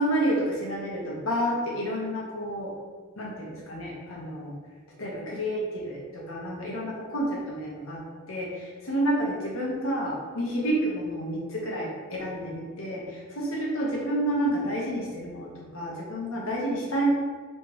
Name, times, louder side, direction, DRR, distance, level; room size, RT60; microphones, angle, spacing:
voice 1, 0.0-2.7 3.2-4.5 5.0-17.1, right 1 dB, 85° left, -3 dB, 1.1 m, -29 dB
3.3 x 3.1 x 4.7 m, 1.5 s
head